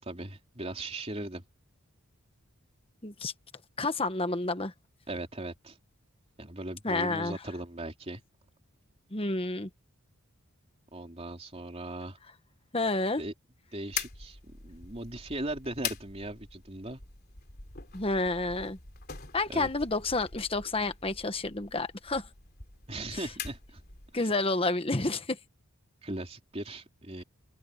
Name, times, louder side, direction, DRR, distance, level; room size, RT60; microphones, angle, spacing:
voice 1, 0.0-1.4 5.1-5.8 6.4-8.2 10.9-12.2 13.2-13.3 13.7-17.0 19.5-19.7 22.9-23.8 24.1-24.3 26.0-27.2, right 1 dB, 25° right, 3.5 m, -38 dB
voice 2, 3.0-3.3 3.8-4.7 6.8-7.4 9.1-9.7 12.7-13.2 17.9-18.8 19.3-22.3 23.1-23.2 24.1-25.4, left 2 dB, 25° left, 1.3 m, -30 dB
sound 1, 13.9-24.2, left 7 dB, 45° left, 3.3 m, -43 dB
open air
head